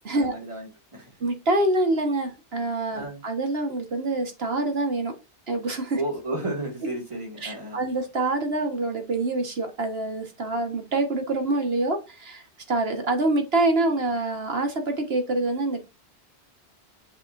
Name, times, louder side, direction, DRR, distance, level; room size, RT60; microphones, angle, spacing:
voice 1, 0.1-1.2 3.0-3.2 5.9-7.8, right 1 dB, 25° right, 2.4 m, -33 dB
voice 2, 1.2-5.1 5.5-6.0 7.4-15.8, right 2 dB, 60° right, 1.7 m, -26 dB
8.4 x 7.4 x 2.6 m
omnidirectional pair, 1.1 m